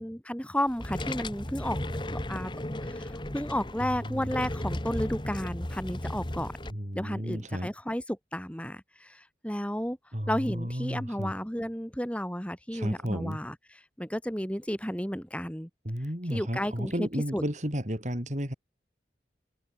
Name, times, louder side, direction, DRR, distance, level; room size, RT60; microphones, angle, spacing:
voice 1, 0.0-1.8 2.3-2.5 2.8-6.5 6.9-10.0 10.3-15.7 16.3-17.4, equal, 5° left, 6.5 m, -33 dB
sound 1, 0.7-6.7, left 1 dB, 25° left, 1.6 m, -35 dB
voice 2, 6.7-7.7 10.1-11.3 12.7-13.4 15.9-18.5, equal, 40° right, 6.0 m, -32 dB
head